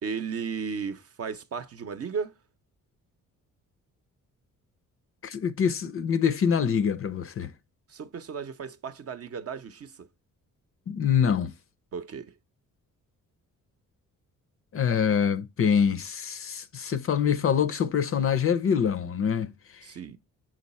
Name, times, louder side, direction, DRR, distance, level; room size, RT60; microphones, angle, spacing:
voice 1, 0.0-2.3 7.9-10.1 11.9-12.3 19.8-20.2, right 6 dB, 45° right, 0.7 m, -35 dB
voice 2, 5.2-7.5 10.9-11.5 14.7-19.8, left 7 dB, 40° left, 0.5 m, -25 dB
6.4 x 3.9 x 4.2 m
cardioid pair, 90°, 33 cm